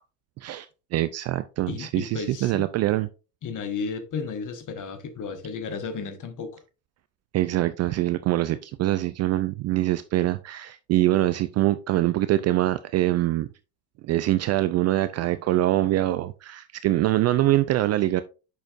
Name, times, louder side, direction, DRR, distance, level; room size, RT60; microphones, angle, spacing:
voice 1, 0.4-3.1 7.3-13.5 14.0-18.2, right 15 dB, 35° right, 0.4 m, -24 dB
voice 2, 1.7-2.7 3.4-6.6, left 5 dB, 40° left, 1.5 m, -33 dB
8.0 x 6.2 x 2.5 m
hypercardioid pair, 65°, 49 cm